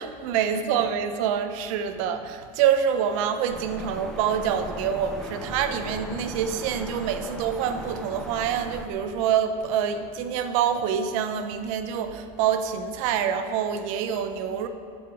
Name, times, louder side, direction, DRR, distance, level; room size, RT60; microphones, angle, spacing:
voice 1, 0.0-14.7, right 8 dB, 70° right, 8 dB, 0.9 m, -26 dB
sound 1, 3.5-8.9, left 1 dB, 5° left, 0.6 m, -38 dB
8.6 x 8.0 x 6.2 m, 2.3 s
cardioid pair, 165°, 17 cm